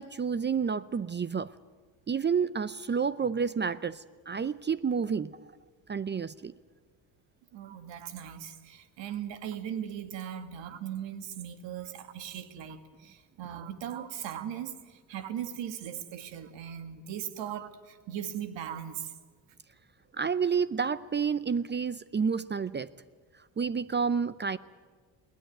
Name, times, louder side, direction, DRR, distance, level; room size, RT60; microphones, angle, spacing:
voice 1, 0.0-1.5 2.1-5.3 5.9-6.5 20.2-22.9 23.6-24.6, right 6 dB, 25° right, 16 dB, 0.6 m, -29 dB
voice 2, 7.5-19.1, right 9 dB, 70° right, 9 dB, 2.1 m, -39 dB
21.5 x 17.5 x 9.3 m, 1.5 s
supercardioid pair, 85°, 46 cm